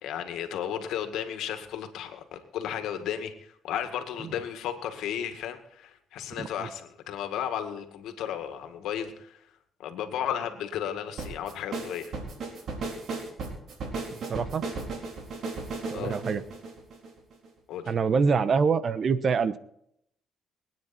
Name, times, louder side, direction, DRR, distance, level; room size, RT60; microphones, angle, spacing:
voice 1, 0.0-9.4 9.8-12.1 15.9-16.2 17.7-17.9, left 9 dB, 85° left, 7 dB, 2.0 m, -34 dB
sound 1, 11.2-17.5, right 3 dB, 65° right, 4.1 m, -35 dB
voice 2, 14.3-14.6 15.9-16.4 17.9-19.6, right 5 dB, 50° right, 14 dB, 1.0 m, -25 dB
24.0 x 9.6 x 4.4 m, 0.72 s
cardioid pair, 90°, 0 cm